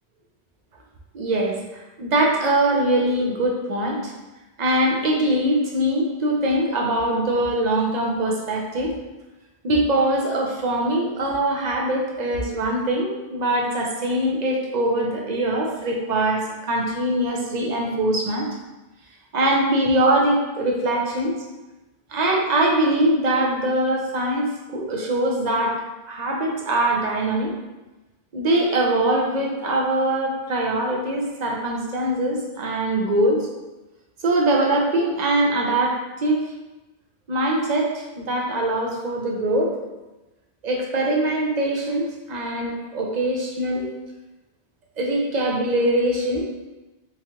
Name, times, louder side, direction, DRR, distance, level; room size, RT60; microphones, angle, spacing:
voice 1, 1.1-4.1 4.6-8.9 9.6-18.5 19.3-21.3 22.1-25.8 26.1-27.5 28.3-33.5 34.2-36.4 37.3-39.7 40.6-43.9 45.0-46.5, right 1 dB, 45° right, 0 dB, 0.7 m, -22 dB
3.5 x 3.1 x 2.9 m, 1.1 s
omnidirectional pair, 1.1 m